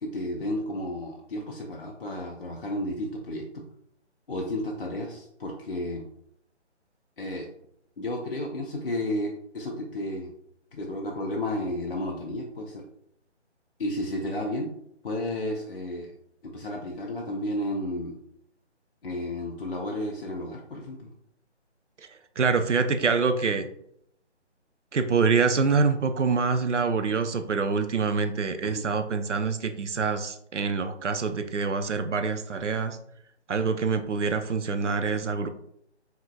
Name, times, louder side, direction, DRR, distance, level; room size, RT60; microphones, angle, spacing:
voice 1, 0.0-3.6 4.3-6.0 7.2-7.5 8.0-10.3 10.7-12.8 13.8-14.7 15.0-16.1 16.4-18.2 19.0-21.1 28.6-28.8, left 1 dB, 50° left, 0 dB, 0.6 m, -32 dB
voice 2, 22.4-23.7 24.9-33.0 33.5-35.5, right 5 dB, 85° right, 8 dB, 0.6 m, -25 dB
4.7 x 2.9 x 2.3 m, 0.72 s
figure-of-eight pair, 150°, 35 cm